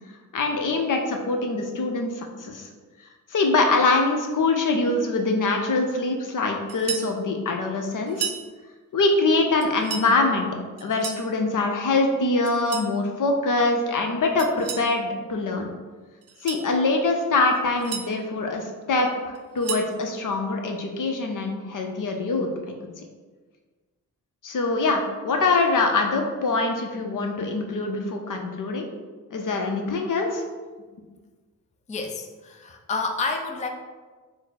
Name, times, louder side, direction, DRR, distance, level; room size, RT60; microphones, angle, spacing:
voice 1, 0.3-2.7 3.3-8.3 8.9-10.5 10.8-15.7 16.4-22.5 24.4-28.9 29.3-30.4, left 3 dB, 60° left, 3 dB, 0.7 m, -24 dB
sound 1, 6.7-7.1 8.1-8.5 9.6-10.1 10.8-11.3 12.4-12.9 14.4-14.9 16.2-16.7 17.5-18.1 19.3-19.9, right 7 dB, 45° right, 0.5 m, -33 dB
voice 2, 31.9-33.7, left 3 dB, 20° left, 3 dB, 0.4 m, -29 dB
4.0 x 2.1 x 4.1 m, 1.4 s
supercardioid pair, 45°, 36 cm